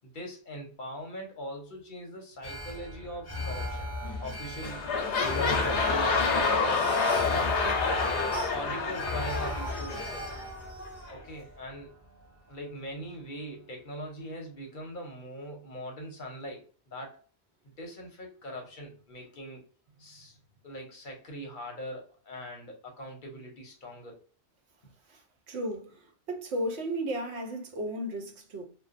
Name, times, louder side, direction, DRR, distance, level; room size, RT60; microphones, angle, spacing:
voice 1, 0.0-3.9 4.2-4.9 5.2-7.0 7.2-8.0 8.5-10.3 11.1-11.9 12.5-17.2 17.8-19.6 20.0-20.4 20.6-24.2, equal, 55° left, 0.7 m, -41 dB
Alarm, 2.4-12.7 13.0-13.1, left 2 dB, 25° left, 0.3 m, -38 dB
sound 1, 4.0-4.3 4.6-10.4 11.1-11.2, left 4 dB, 90° left, 0.9 m, -28 dB
sound 2, 6.5-7.4 8.3-8.6 9.2-11.2, right 2 dB, ahead, 1.1 m, -42 dB
voice 2, 25.5-26.0 26.3-28.6, right 1 dB, 75° right, 0.9 m, -34 dB
2.6 x 2.1 x 2.4 m
omnidirectional pair, 1.1 m